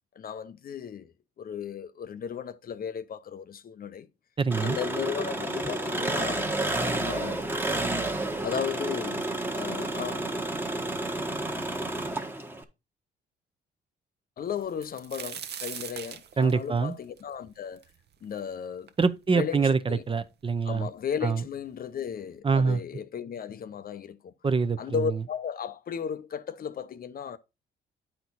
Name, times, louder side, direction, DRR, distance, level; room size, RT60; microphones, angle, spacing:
voice 1, 0.2-4.1 4.6-6.5 7.0-7.4 8.4-9.3 9.6-10.3 14.4-17.8 18.2-18.9 19.3-20.0 20.6-24.3 24.8-27.4, left 7 dB, 50° left, 0.6 m, -35 dB
voice 2, 4.4-4.8 16.4-16.9 19.0-20.9 21.2-21.4 22.4-22.8 24.4-25.0, right 5 dB, 25° right, 0.6 m, -25 dB
Engine, 4.5-12.6, right 2 dB, 10° right, 1.1 m, -30 dB
sound 1, 14.6-18.4 18.9-19.0 19.7-19.8 20.1-20.8 21.7-21.8 22.1-22.3, right 8 dB, 55° right, 0.9 m, -41 dB
9.4 x 4.4 x 4.0 m
cardioid pair, 90°, 20 cm